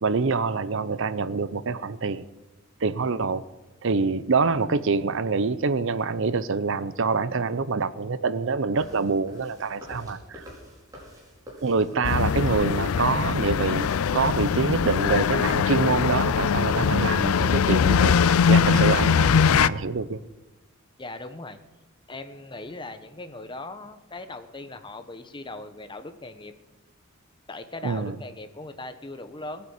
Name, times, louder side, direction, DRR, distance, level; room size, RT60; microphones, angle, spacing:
voice 1, 0.0-2.2 2.8-3.4 3.8-10.4 11.6-20.2 27.8-28.2, right 4 dB, 60° right, 15 dB, 0.6 m, -26 dB
sound 1, 8.7-15.1, equal, 15° right, 4.9 m, -45 dB
sound 2, 12.0-19.7, left 6 dB, 90° left, 0.4 m, -21 dB
voice 2, 21.0-21.6 22.1-26.5 27.5-29.7, left 2 dB, 25° left, 9 dB, 1.1 m, -39 dB
18.5 x 8.3 x 8.3 m, 1.1 s
head